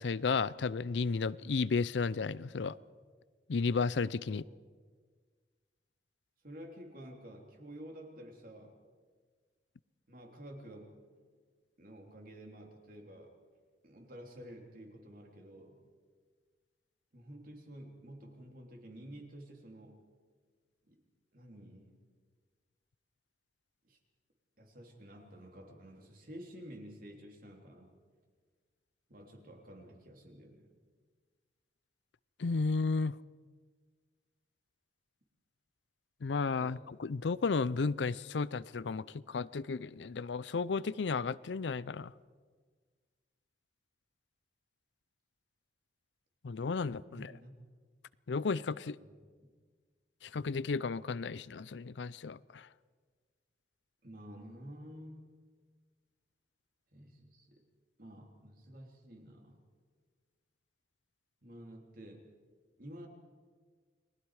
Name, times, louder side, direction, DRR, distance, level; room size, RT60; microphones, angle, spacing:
voice 1, 0.0-2.8 3.5-4.4 32.4-33.2 36.2-42.1 46.4-47.3 48.3-49.0 50.2-52.7, left 4 dB, 85° left, 19 dB, 0.5 m, -33 dB
voice 2, 6.4-8.8 10.1-11.0 11.8-13.3 13.8-15.9 17.1-20.0 20.9-21.0 21.3-22.0 23.9-24.0 24.6-28.0 29.1-30.7 36.6-36.8 47.1-47.5 49.0-49.1 54.0-55.3 56.9-57.6 58.0-59.6 61.4-62.3 62.8-63.1, equal, 55° right, 2 dB, 3.2 m, -51 dB
29.5 x 20.0 x 4.9 m, 1.5 s
head